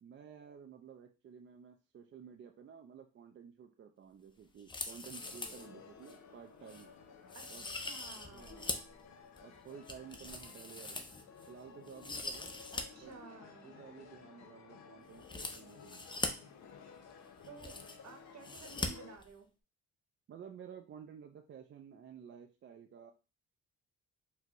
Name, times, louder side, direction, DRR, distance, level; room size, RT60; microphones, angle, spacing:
voice 1, 0.0-6.9 7.5-7.7 8.3-8.8 9.4-11.0 11.5-12.6 13.0-13.1 13.6-16.1 20.3-23.1, right 7 dB, 40° right, 4 dB, 0.4 m, -53 dB
sound 1, 4.6-5.7 6.1-6.2 6.7-6.8 7.3-8.9 9.4-11.5 11.9-12.8 13.1-13.2 15.2-16.3 17.1-17.2 17.4-18.1 18.4-18.9 19.2-19.3, left 3 dB, 15° left, 0.5 m, -41 dB
sound 2, 5.2-19.2, left 6 dB, 65° left, 0.7 m, -55 dB
voice 2, 7.7-8.5 12.7-13.7 17.5-17.8 18.0-19.5, right 5 dB, 60° right, 6 dB, 0.9 m, -53 dB
4.2 x 2.1 x 2.9 m, 0.32 s
cardioid pair, 90°, 30 cm